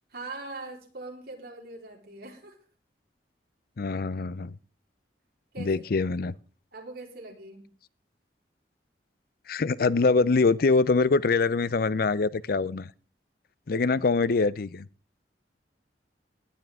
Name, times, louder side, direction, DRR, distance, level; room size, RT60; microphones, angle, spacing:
voice 1, 0.1-2.6 5.5-5.9 6.7-7.7 13.7-13.9, right 2 dB, 60° right, 0 dB, 3.8 m, -42 dB
voice 2, 3.8-4.5 5.6-6.3 9.5-12.9 13.7-14.9, left 4 dB, 55° left, 19 dB, 0.5 m, -24 dB
18.5 x 10.5 x 3.5 m, 0.37 s
head